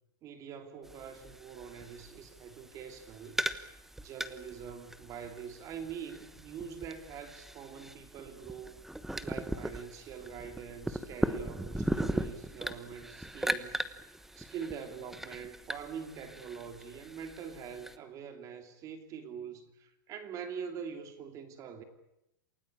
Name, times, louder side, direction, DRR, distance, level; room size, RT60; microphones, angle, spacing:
voice 1, 0.2-3.5 4.0-8.8 9.2-13.8 14.4-21.8, right 7 dB, 30° right, 8 dB, 2.8 m, -44 dB
sound 1, 0.8-18.0, right 1 dB, 5° right, 1.1 m, -39 dB
28.5 x 18.5 x 8.7 m, 0.86 s
supercardioid pair, 155°, 11 cm